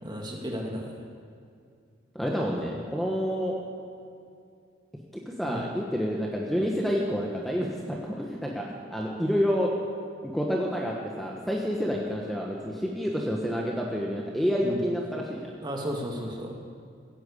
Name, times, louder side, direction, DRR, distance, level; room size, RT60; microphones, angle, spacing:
voice 1, 0.0-0.9 5.4-5.7 14.6-14.8 15.6-16.5, equal, 25° right, 0 dB, 2.0 m, -33 dB
voice 2, 2.1-3.6 5.1-9.7 10.2-15.5, equal, ahead, -2 dB, 1.3 m, -29 dB
15.5 x 9.1 x 8.6 m, 2.4 s
head